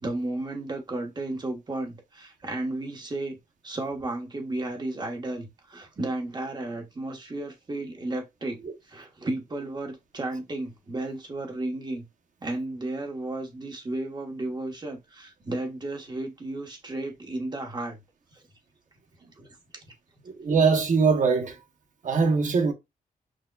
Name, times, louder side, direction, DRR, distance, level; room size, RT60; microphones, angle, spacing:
voice 1, 0.0-3.4 3.6-8.6 8.8-12.0 12.4-18.0 18.3-18.4 19.4-19.5 19.7-19.8, right 2 dB, 30° right, 1.0 m, -33 dB
voice 2, 20.2-21.6 22.0-22.7, right 5 dB, 60° right, 0.8 m, -22 dB
6.0 x 2.2 x 2.2 m
wide cardioid pair, 125°, 15 cm